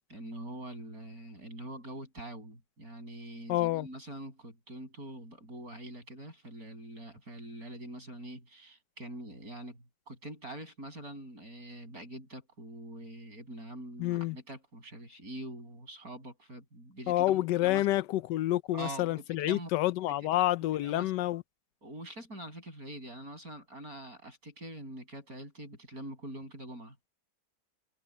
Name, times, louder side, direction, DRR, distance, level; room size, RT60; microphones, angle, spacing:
voice 1, 0.0-17.9 18.7-19.7 20.4-20.5 20.8-21.1 21.8-27.0, right 1 dB, 55° right, 8.4 m, -44 dB
voice 2, 3.5-3.9 14.0-14.4 17.1-21.4, left 15 dB, 80° left, 1.2 m, -28 dB
omnidirectional pair, 1.9 m